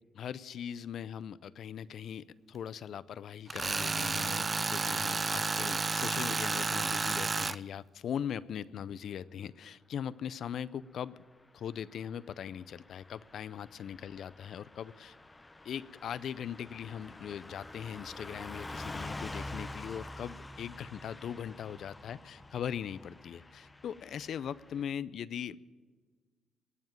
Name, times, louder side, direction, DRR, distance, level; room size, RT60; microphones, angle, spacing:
voice 1, 0.1-11.2 11.5-15.1 15.6-25.6, left 8 dB, 65° left, 18 dB, 0.5 m, -40 dB
Tools, 3.5-7.6, right 4 dB, 30° right, 0.3 m, -31 dB
Car passing by / Truck, 11.9-24.9, left 2 dB, 15° left, 0.7 m, -47 dB
19.0 x 7.2 x 9.0 m, 1.5 s
cardioid pair, 90°, 0 cm